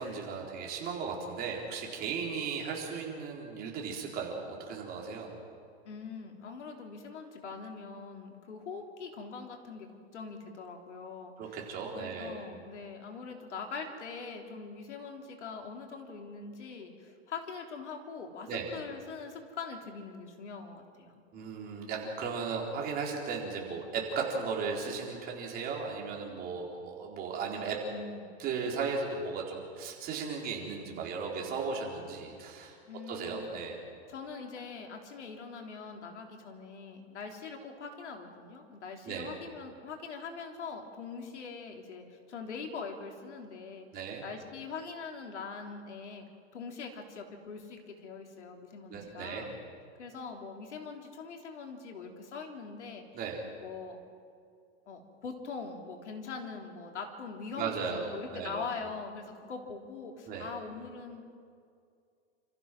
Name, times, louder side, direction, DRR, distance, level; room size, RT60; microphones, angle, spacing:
voice 1, 0.0-5.3 11.4-12.4 18.5-18.7 21.3-27.8 28.4-32.8 33.1-33.8 39.0-39.3 43.9-44.2 48.9-49.5 53.1-53.4 57.6-58.6 60.3-60.5, right 5 dB, 25° right, -1 dB, 4.2 m, -36 dB
voice 2, 5.8-11.7 11.9-21.2 27.9-28.3 32.8-33.4 34.1-43.9 44.2-49.5 50.0-53.0 53.6-54.0 54.9-61.2, left 5 dB, 90° left, 2 dB, 3.7 m, -43 dB
29.0 x 15.0 x 6.2 m, 2.3 s
hypercardioid pair, 150°, 34 cm